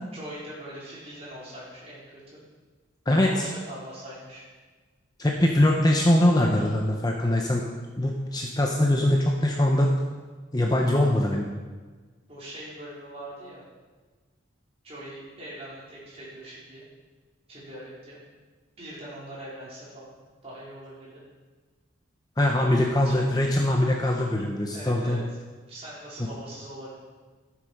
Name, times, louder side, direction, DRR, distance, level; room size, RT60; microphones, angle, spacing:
voice 1, 0.1-2.4 3.1-4.4 12.3-13.6 14.8-16.8 17.5-18.2 18.8-20.1 20.4-21.2 22.9-23.6 24.7-27.0, right 1 dB, 30° right, -7 dB, 4.3 m, -42 dB
voice 2, 3.1-3.4 5.2-7.7 8.0-9.9 10.5-11.5 22.4-25.2, left 1 dB, 20° left, 0 dB, 0.9 m, -22 dB
14.0 x 7.7 x 5.4 m, 1.4 s
head